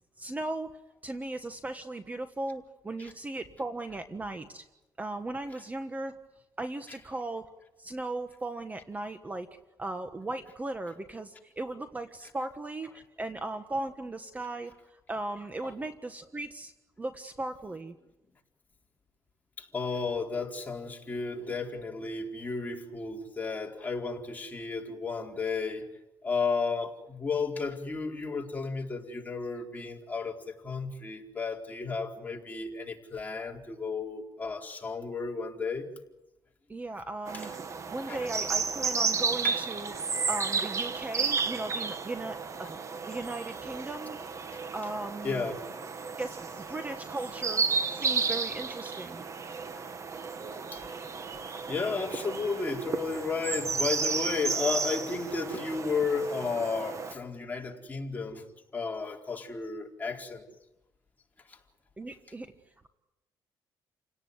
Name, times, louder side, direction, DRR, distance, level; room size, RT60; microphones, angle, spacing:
voice 1, 0.2-4.7 5.0-6.1 6.6-7.5 7.8-9.5 9.8-16.7 17.0-18.0 36.7-37.5 37.9-39.9 40.3-42.8 43.1-44.2 44.7-45.5 46.2-49.3 62.0-62.5, right 2 dB, 20° right, 8 dB, 1.5 m, -37 dB
voice 2, 19.6-25.9 26.2-35.9 37.3-37.5 38.1-38.3 39.4-39.6 45.2-45.6 50.7-50.8 51.5-58.4 58.7-60.4 61.5-61.6, left 4 dB, 20° left, 0 dB, 4.5 m, -33 dB
sound 1, 37.3-57.1, right 5 dB, 40° right, 1.8 m, -33 dB
30.0 x 18.0 x 9.6 m, 0.98 s
cardioid pair, 105°, 8 cm